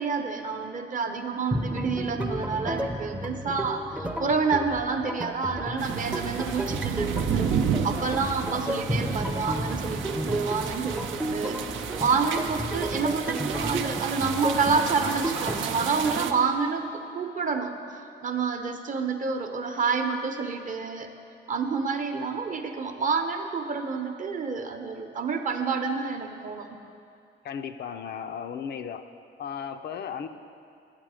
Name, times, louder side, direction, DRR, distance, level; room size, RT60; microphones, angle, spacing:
voice 1, 0.0-7.4 7.8-17.7 18.2-21.1 21.5-26.7, right 5 dB, 40° right, 6 dB, 0.8 m, -28 dB
sound 1, 1.5-16.3, equal, 5° right, 0.5 m, -33 dB
sound 2, 5.8-16.3, right 7 dB, 75° right, 0.5 m, -32 dB
voice 2, 27.4-29.1 29.4-30.3, left 7 dB, 55° left, 8 dB, 0.5 m, -35 dB
9.0 x 7.3 x 4.9 m, 2.5 s
cardioid pair, 90°, 20 cm